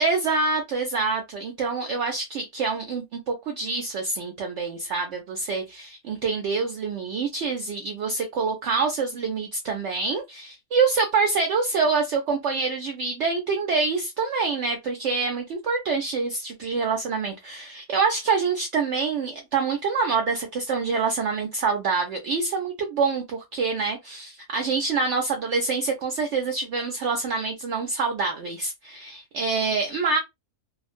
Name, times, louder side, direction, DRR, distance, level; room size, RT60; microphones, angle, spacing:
voice 1, 0.0-30.2, right 4 dB, 65° right, 0.7 m, -26 dB
2.4 x 2.1 x 2.4 m
omnidirectional pair, 1.5 m